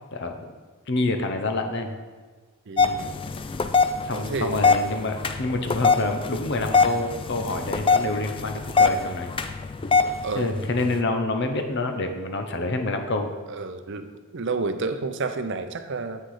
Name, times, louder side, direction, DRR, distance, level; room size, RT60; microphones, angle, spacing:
voice 1, 0.9-1.9 4.0-9.3 10.4-13.3, left 2 dB, 50° left, 6 dB, 0.8 m, -27 dB
voice 2, 2.7-3.2 4.1-4.6 10.2-10.5 13.5-14.1 14.3-16.2, right 3 dB, 55° right, 9 dB, 0.6 m, -30 dB
sound 1, 2.8-11.0, left 4 dB, 25° left, 0.3 m, -24 dB
7.7 x 6.5 x 4.9 m, 1.5 s
head